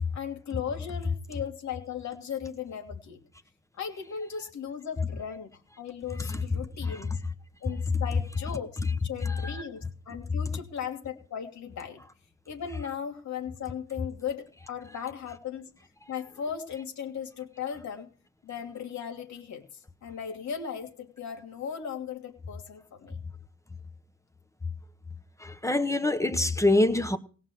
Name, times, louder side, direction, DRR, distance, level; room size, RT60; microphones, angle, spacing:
voice 1, 0.1-3.2 3.8-7.2 7.6-12.0 12.5-15.7 16.1-18.1 18.4-23.2, left 7 dB, 65° left, 2.8 m, -37 dB
voice 2, 25.4-27.2, left 2 dB, 10° left, 1.0 m, -24 dB
17.5 x 5.9 x 7.9 m
cardioid pair, 90°, 30 cm